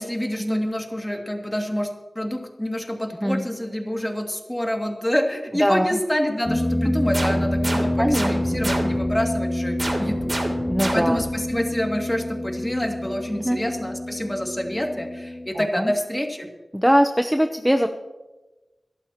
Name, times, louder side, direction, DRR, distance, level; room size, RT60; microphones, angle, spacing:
voice 1, 0.0-10.4 10.9-16.5, equal, 15° left, 2 dB, 2.5 m, -27 dB
voice 2, 5.6-6.0 8.0-8.7 10.7-11.2 13.4-13.6 15.8-15.9 16.7-17.9, equal, 5° right, 6 dB, 0.8 m, -21 dB
sound 1, 6.4-15.5, left 1 dB, 30° left, 2.6 m, -27 dB
sound 2, 7.1-9.2 9.8-11.4, right 1 dB, 50° right, 3.2 m, -29 dB
22.0 x 12.0 x 3.0 m, 1.1 s
cardioid pair, 40°, 0 cm